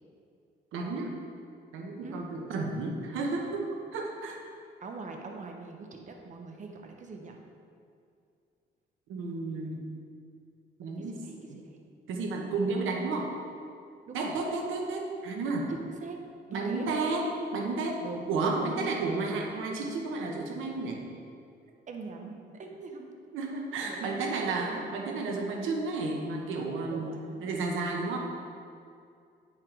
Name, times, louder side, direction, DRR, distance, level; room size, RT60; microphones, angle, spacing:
voice 1, 0.7-1.1 1.7-4.4 9.1-9.8 10.8-11.2 12.1-13.3 14.1-15.7 16.5-17.2 17.5-21.0 23.3-27.1 27.4-28.2, right 3 dB, 85° right, 1 dB, 1.0 m, -32 dB
voice 2, 4.8-7.4 11.0-11.8 14.1-14.3 15.7-16.2 16.5-17.2 18.0-19.0 21.9-23.1 23.8-24.6 26.9-27.6, right 4 dB, 40° right, 2 dB, 0.8 m, -42 dB
9.4 x 4.8 x 3.8 m, 2.4 s
cardioid pair, 90°, 20 cm